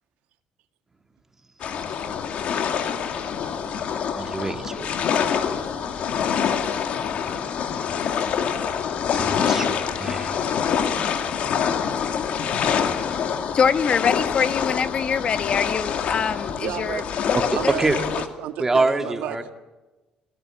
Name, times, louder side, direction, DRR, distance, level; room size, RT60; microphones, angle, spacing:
sound 1, 1.6-18.3, left 7 dB, 60° left, 2.2 m, -26 dB
voice 1, 4.1-4.9 9.1-10.4 17.5-18.0 18.6-19.5, right 2 dB, 15° right, 6 dB, 2.4 m, -25 dB
voice 2, 13.5-17.3 17.6-17.7, left 6 dB, 45° left, 11 dB, 1.5 m, -24 dB
voice 3, 16.6-17.1 17.6-19.4, right 11 dB, 85° right, 8 dB, 1.8 m, -32 dB
26.0 x 17.0 x 8.5 m, 1.1 s
cardioid pair, 110°, 2 cm